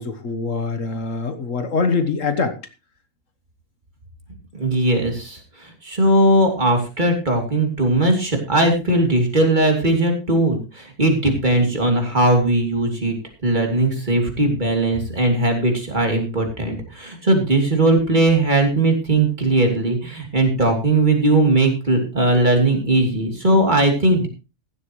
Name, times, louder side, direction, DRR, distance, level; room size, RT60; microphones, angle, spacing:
voice 1, 0.0-2.6, left 4 dB, 65° left, 9 dB, 1.6 m, -23 dB
voice 2, 4.5-13.2 13.4-24.3, right 2 dB, 35° right, 2 dB, 3.1 m, -19 dB
15.5 x 12.0 x 3.1 m, 0.29 s
omnidirectional pair, 1.5 m